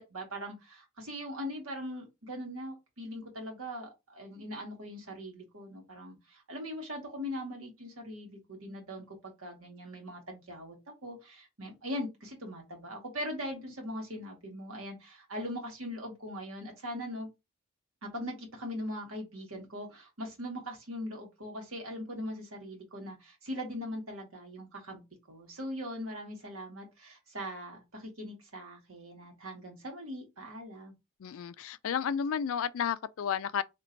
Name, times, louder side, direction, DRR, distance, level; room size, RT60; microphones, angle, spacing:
voice 1, 0.0-10.8 11.0-17.3 18.0-25.0 25.3-30.9, equal, 75° right, 1.6 m, -41 dB
voice 2, 31.2-33.6, left 7 dB, 70° left, 0.3 m, -32 dB
2.9 x 2.6 x 4.3 m
head